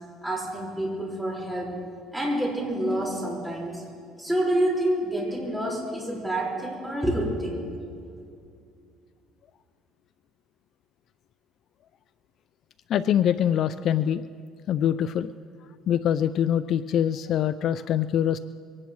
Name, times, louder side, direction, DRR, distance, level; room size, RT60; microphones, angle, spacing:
voice 1, 0.2-1.7 2.1-3.8 4.2-7.7, right 1 dB, 5° right, -4 dB, 4.8 m, -28 dB
voice 2, 12.9-14.2 14.7-15.3 15.9-18.4, left 10 dB, 50° left, 13 dB, 0.4 m, -24 dB
23.5 x 18.0 x 3.1 m, 2.4 s
cardioid pair, 135°, 0 cm